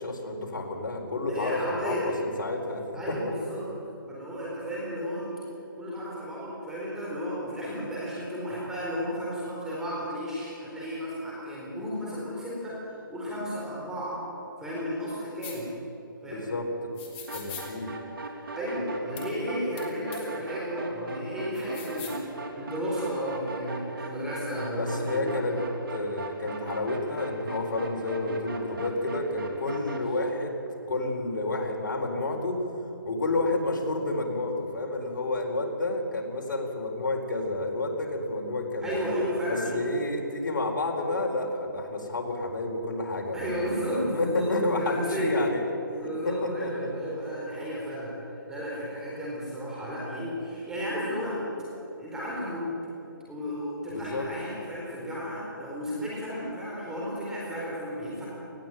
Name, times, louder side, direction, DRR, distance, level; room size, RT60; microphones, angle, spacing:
voice 1, 0.0-3.2 16.3-16.9 17.3-17.9 24.7-25.6 25.9-30.6 30.9-32.6 33.1-38.9 39.5-45.7 46.0-46.9 53.9-54.3, left 2 dB, 60° left, 1 dB, 4.3 m, -30 dB
voice 2, 1.3-2.2 2.9-3.7 4.1-5.3 5.8-12.8 13.1-14.2 14.6-15.7 16.2-16.5 18.5-25.6 38.8-39.9 43.3-44.5 44.8-45.4 46.0-51.4 52.0-52.8 53.3-58.3, equal, 5° right, -7 dB, 4.2 m, -33 dB
sound 1, 15.4-15.6 17.0-17.7 19.2-19.3 19.8-19.9 20.1-20.2 21.5-22.2, left 7 dB, 20° left, 2.7 m, -41 dB
sound 2, 17.3-30.1, right 2 dB, 75° right, 3.6 m, -39 dB
19.5 x 15.5 x 9.1 m, 3.0 s
hypercardioid pair, 155°, 12 cm